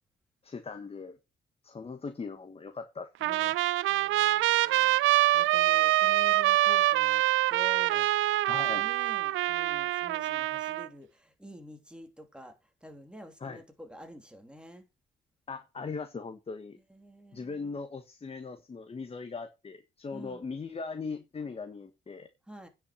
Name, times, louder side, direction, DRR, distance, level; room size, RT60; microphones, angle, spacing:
voice 1, 0.4-1.2 1.6-3.6 8.4-8.9 13.4-13.6 15.5-16.8 17.3-22.3, left 4 dB, 30° left, 1.3 m, -39 dB
Trumpet, 3.2-10.9, right 16 dB, 80° right, 0.5 m, -25 dB
voice 2, 3.9-7.2 7.5-8.1 8.7-12.5 12.8-14.9 16.9-17.7 20.1-20.4 22.5-22.7, equal, 5° right, 2.8 m, -48 dB
9.5 x 6.0 x 6.5 m
cardioid pair, 90°, 20 cm